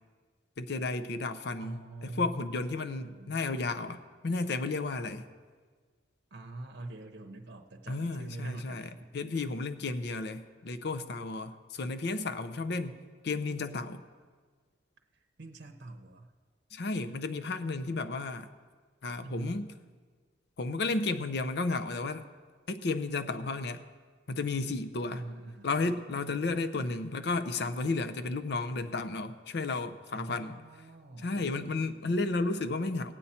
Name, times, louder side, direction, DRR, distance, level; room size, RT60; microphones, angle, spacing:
voice 1, 0.6-5.2 7.9-13.0 13.2-14.0 16.7-18.5 19.0-19.7 20.6-22.2 22.7-23.8 24.3-25.2 25.6-30.6 31.2-33.1, left 3 dB, 65° left, 10 dB, 0.6 m, -33 dB
voice 2, 1.6-3.4 6.3-9.1 15.1-16.3 19.2-19.6 25.1-25.7 30.1-31.5, right 2 dB, 65° right, 4 dB, 0.7 m, -43 dB
17.5 x 8.3 x 4.3 m, 1.5 s
head